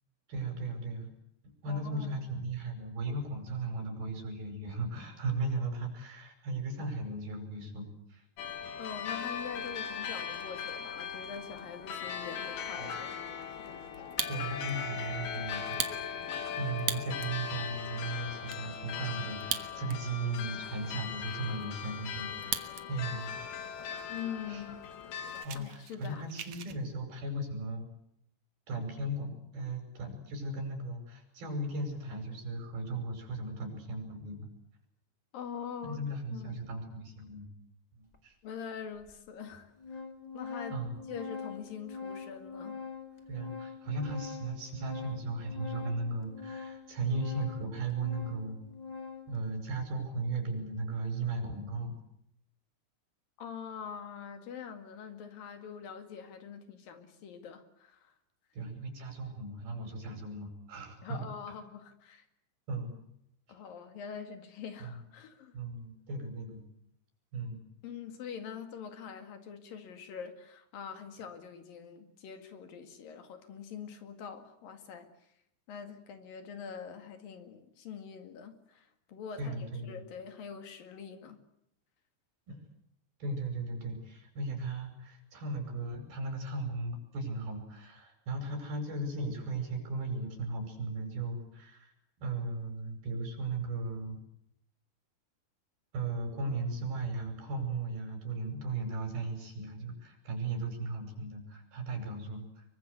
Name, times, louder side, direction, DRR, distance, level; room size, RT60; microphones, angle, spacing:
voice 1, 0.3-1.1 1.4-8.2 12.8-13.0 13.9-14.0 14.3-16.3 16.6-23.4 24.5-24.6 25.4-27.8 28.7-34.4 35.8-37.5 38.0-38.4 40.7-41.0 43.3-48.6 49.3-51.9 58.5-61.2 62.7-62.9 64.8-65.0 65.5-66.6 67.3-67.6 79.4-80.0 82.5-82.6 83.2-91.9 92.2-94.2 95.9-102.6, right 2 dB, 80° right, 5 dB, 7.6 m, -36 dB
voice 2, 1.7-2.1 8.8-13.2 24.1-24.8 25.6-26.3 35.3-36.0 36.3-36.7 38.4-40.0 40.3-40.8 41.1-42.8 53.4-58.1 61.0-62.3 63.5-65.6 67.8-75.1 75.7-81.4, left 7 dB, 70° left, 7 dB, 3.9 m, -44 dB
sound 1, 8.4-25.5, left 7 dB, 90° left, 4.1 m, -39 dB
Fire, 13.9-14.7 15.1-15.2 15.7-17.4 17.9-18.0 18.2-18.6 19.3-20.2 20.5-20.6 21.1-22.9 23.2-23.6 24.2-24.3 24.5-24.7 25.0-26.8, right 10 dB, 60° right, 2.1 m, -38 dB
Organ, 38.1-38.2 39.1-39.2 39.5-49.4, left 5 dB, 15° left, 1.3 m, -44 dB
24.5 x 23.5 x 8.2 m, 0.75 s
omnidirectional pair, 4.3 m